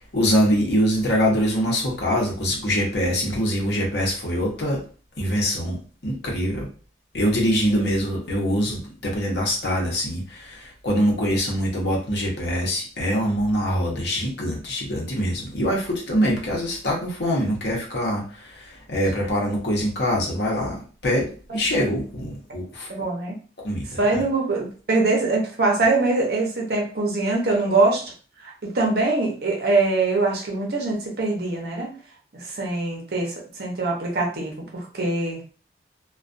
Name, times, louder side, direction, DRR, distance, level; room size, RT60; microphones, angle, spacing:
voice 1, 0.1-4.8 5.2-5.8 6.0-6.7 7.1-22.9 23.6-24.2, equal, 65° left, -2 dB, 0.8 m, -24 dB
voice 2, 22.9-23.3 24.0-28.1 28.4-31.9 32.4-35.4, right 3 dB, 60° right, -1 dB, 0.7 m, -23 dB
2.3 x 2.3 x 2.5 m, 0.39 s
head